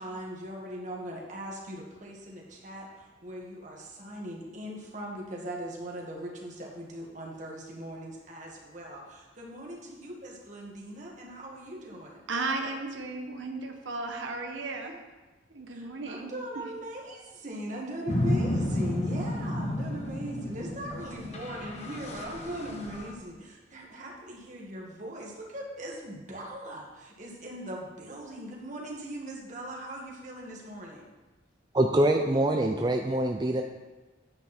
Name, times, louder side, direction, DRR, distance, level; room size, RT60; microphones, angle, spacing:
voice 1, 0.0-12.2 15.7-31.0, right 1 dB, 40° right, -2 dB, 1.9 m, -40 dB
voice 2, 12.3-15.0 15.5-16.7, right 3 dB, 85° right, 3 dB, 1.2 m, -35 dB
sound 1, 18.1-23.1, left 1 dB, 35° left, 1.1 m, -31 dB
voice 3, 31.7-33.6, right 1 dB, 20° right, 3 dB, 0.4 m, -24 dB
9.8 x 7.9 x 4.3 m, 1.2 s
head